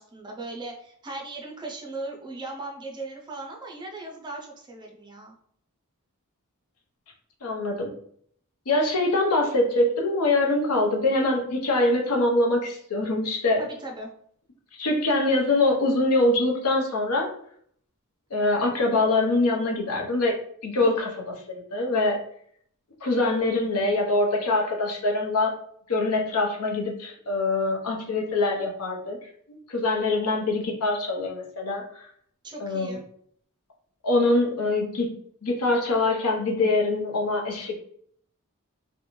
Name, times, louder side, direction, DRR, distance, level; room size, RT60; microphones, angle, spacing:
voice 1, 0.0-5.3 13.6-14.1 20.8-20.9 32.4-33.0, right 2 dB, 20° right, 0 dB, 0.5 m, -38 dB
voice 2, 7.4-7.9 8.7-13.6 14.8-17.3 18.3-20.4 20.6-21.1 21.5-22.2 23.0-25.6 25.9-29.2 29.5-32.0 32.6-33.0 34.0-35.2 35.4-37.7, left 2 dB, 75° left, 1 dB, 0.7 m, -24 dB
2.5 x 2.2 x 3.0 m, 0.64 s
head